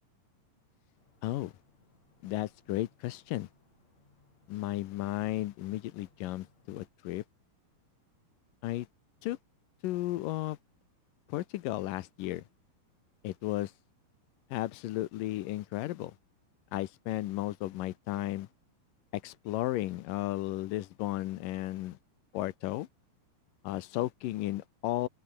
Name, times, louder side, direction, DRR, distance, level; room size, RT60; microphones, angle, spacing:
sound 1, 1.0-6.9, left 3 dB, 45° left, 7.7 m, -68 dB
voice 1, 1.2-1.5 2.2-3.5 4.5-7.2 8.6-8.9 9.2-9.4 9.8-10.6 11.3-12.4 13.2-13.7 14.5-16.1 16.7-18.5 19.1-22.0 22.3-22.9 23.6-25.1, left 16 dB, 75° left, 2.2 m, -34 dB
open air
omnidirectional pair, 4.6 m